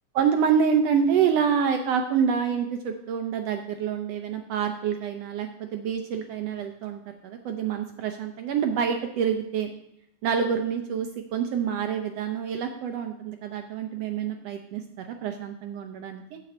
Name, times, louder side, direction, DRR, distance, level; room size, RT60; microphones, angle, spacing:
voice 1, 0.1-9.7 10.2-16.4, right 7 dB, 75° right, 6 dB, 1.5 m, -27 dB
9.0 x 7.9 x 4.3 m, 0.81 s
omnidirectional pair, 3.5 m